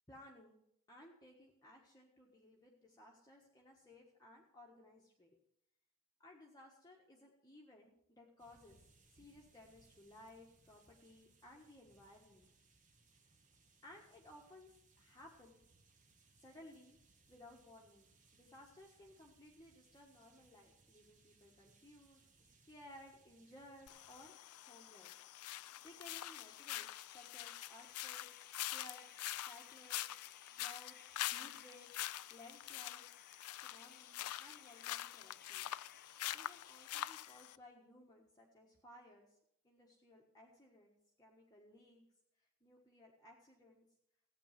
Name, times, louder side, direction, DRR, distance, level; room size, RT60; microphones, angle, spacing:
voice 1, 0.1-0.6 0.9-5.4 6.2-8.8 9.1-12.5 13.8-15.6 16.4-17.0 17.3-22.2 22.6-24.3 24.6-25.1 25.8-28.3 28.7-33.0 33.5-35.7 36.3-39.4 39.6-42.0 42.4-43.9, left 1 dB, 15° left, -2 dB, 1.5 m, -60 dB
sound 1, 8.4-24.3, right 3 dB, 35° right, 1.3 m, -70 dB
sound 2, 23.9-37.6, left 13 dB, 80° left, 0.4 m, -45 dB
sound 3, 26.1-37.1, left 8 dB, 45° left, 0.9 m, -63 dB
15.0 x 8.8 x 5.9 m, 0.74 s
head